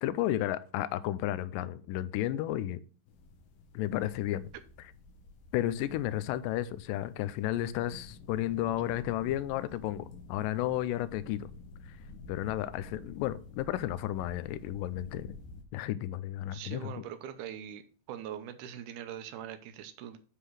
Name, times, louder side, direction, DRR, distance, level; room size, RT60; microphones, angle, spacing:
voice 1, 0.0-2.8 3.7-4.5 5.5-11.5 11.9-12.0 12.3-15.4 15.7-16.9, left 13 dB, 85° left, 2.0 m, -32 dB
sound 1, 3.1-15.6, left 3 dB, 70° left, 2.5 m, -50 dB
voice 2, 16.5-17.8 18.1-20.2, right 10 dB, 80° right, 1.9 m, -42 dB
10.0 x 3.7 x 6.1 m
omnidirectional pair, 4.4 m